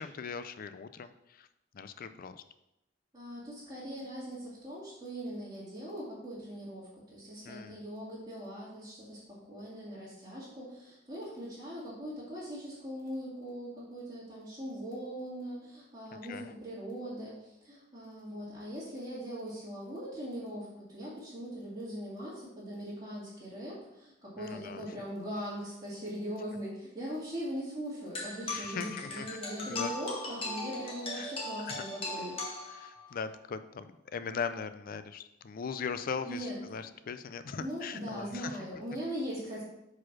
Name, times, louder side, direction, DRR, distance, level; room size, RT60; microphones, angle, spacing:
voice 1, 0.0-1.5 1.7-2.4 7.5-7.8 16.1-16.5 24.4-24.8 28.5-29.3 29.7-29.9 31.1-31.3 31.7-31.8 32.7-38.5, left 6 dB, 50° left, 12 dB, 0.4 m, -39 dB
voice 2, 3.1-32.4 33.1-33.2 36.3-36.6 37.6-39.6, equal, 25° right, -10 dB, 2.1 m, -40 dB
sound 1, 28.1-33.2, left 2 dB, 30° left, 1.4 m, -39 dB
5.0 x 4.1 x 5.9 m, 0.88 s
head